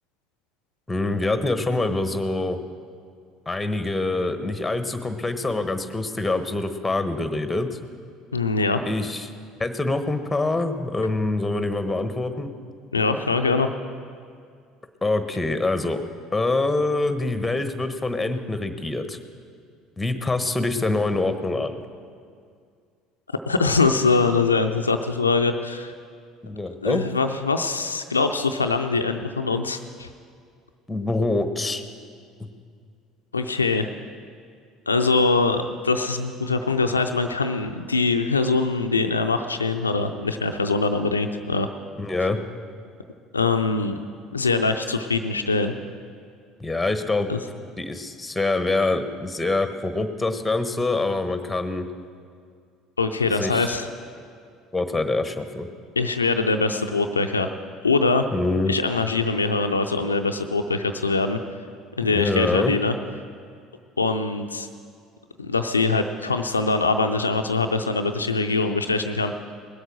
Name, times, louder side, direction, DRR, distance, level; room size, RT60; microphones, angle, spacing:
voice 1, 0.9-2.6 3.5-7.8 8.9-9.3 9.6-12.5 15.0-16.0 16.3-19.2 20.0-21.8 26.4-27.0 30.9-31.8 42.0-42.4 46.6-47.3 47.8-51.9 53.4-53.7 54.7-55.7 58.3-58.7 62.1-62.7, left 2 dB, 10° left, 9 dB, 1.2 m, -25 dB
voice 2, 8.3-8.8 12.9-13.7 23.5-25.9 26.8-30.1 33.3-33.9 34.9-41.7 43.3-43.9 44.3-45.7 47.3-47.4 53.0-53.9 56.0-57.5 57.8-58.3 58.7-61.4 62.0-62.9 64.0-64.7 65.4-69.4, left 3 dB, 90° left, 6 dB, 0.4 m, -23 dB
19.0 x 8.0 x 6.1 m, 2.2 s
figure-of-eight pair, 60°, 0 cm